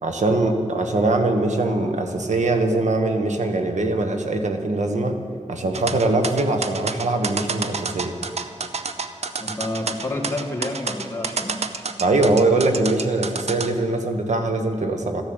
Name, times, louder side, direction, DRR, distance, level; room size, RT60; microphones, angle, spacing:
voice 1, 0.0-5.2 5.5-8.1 12.0-15.2, right 2 dB, 90° right, 5 dB, 1.4 m, -22 dB
sound 1, 5.7-13.7, right 4 dB, 65° right, 0.8 m, -28 dB
voice 2, 9.4-11.7, left 1 dB, 20° left, 0 dB, 2.4 m, -29 dB
14.0 x 10.5 x 8.0 m, 2.4 s
wide cardioid pair, 85°, 12 cm